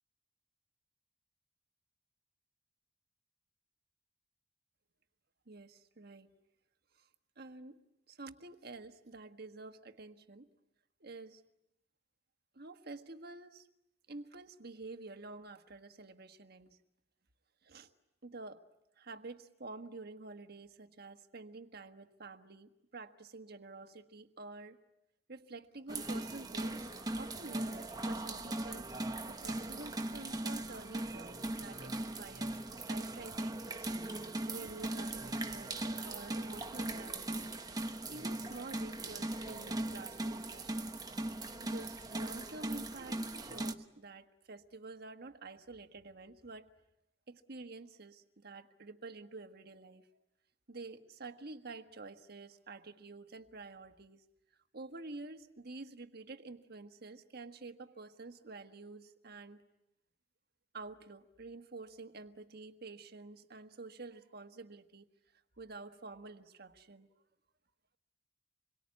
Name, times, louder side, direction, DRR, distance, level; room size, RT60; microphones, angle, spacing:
voice 1, 5.5-6.3 6.9-7.1 7.4-7.8 8.1-10.5 11.0-11.4 12.5-13.7 14.1-16.8 17.6-17.9 18.2-18.6 19.0-24.8 25.3-28.9 29.3-33.9 34.5-35.8 36.0-37.5 38.1-41.0 41.6-46.7 47.3-50.1 50.7-54.2 54.7-59.6 60.7-65.1 65.3-67.1, right 3 dB, 55° right, 8 dB, 1.5 m, -49 dB
sound 1, 25.9-43.7, right 1 dB, 20° right, 1.2 m, -39 dB
27.0 x 23.0 x 9.5 m, 0.87 s
head